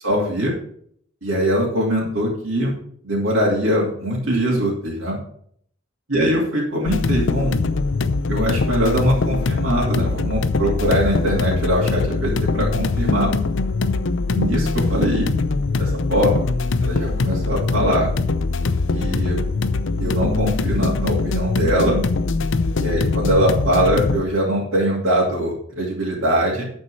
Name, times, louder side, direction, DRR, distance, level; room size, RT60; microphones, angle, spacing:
voice 1, 0.0-0.5 1.2-2.7 3.0-5.2 6.1-7.7 8.3-13.3 14.3-15.3 15.8-16.4 16.8-18.1 18.9-19.4 20.0-22.0 22.8-26.6, equal, 85° right, -5 dB, 2.6 m, -22 dB
sound 1, 6.9-24.2, left 3 dB, 65° left, 0.6 m, -22 dB
10.5 x 4.4 x 6.3 m, 0.63 s
head